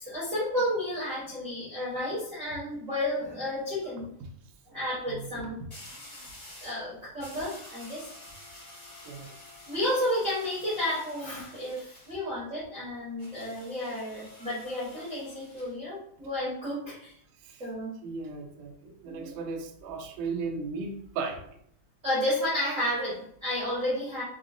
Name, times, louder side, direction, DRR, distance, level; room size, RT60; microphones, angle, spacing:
voice 1, 0.0-4.1 4.7-5.6 6.6-8.1 9.7-17.1 17.6-17.9 19.0-19.3 22.0-24.2, left 1 dB, 40° right, -9 dB, 1.1 m, -32 dB
sound 1, 2.8-2.9 5.7-6.8 7.2-12.2 13.2-15.7, left 1 dB, 45° left, 0.5 m, -49 dB
voice 2, 18.0-21.4, right 4 dB, 75° right, 3 dB, 2.1 m, -36 dB
5.8 x 2.0 x 3.6 m, 0.66 s
omnidirectional pair, 4.2 m